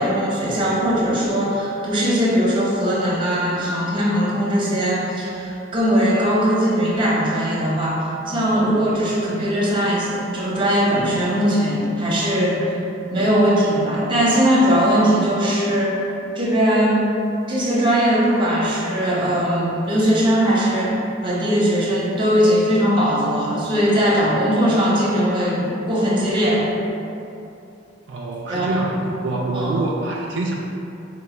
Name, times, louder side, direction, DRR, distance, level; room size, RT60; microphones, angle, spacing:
voice 1, 0.0-12.8 13.1-16.0 16.4-17.0 17.5-21.0 21.2-26.6 28.5-28.7 29.5-29.7, equal, 25° right, -6 dB, 0.7 m, -19 dB
voice 2, 28.1-30.5, right 2 dB, 70° right, -2 dB, 0.3 m, -25 dB
3.9 x 2.1 x 4.2 m, 2.8 s
head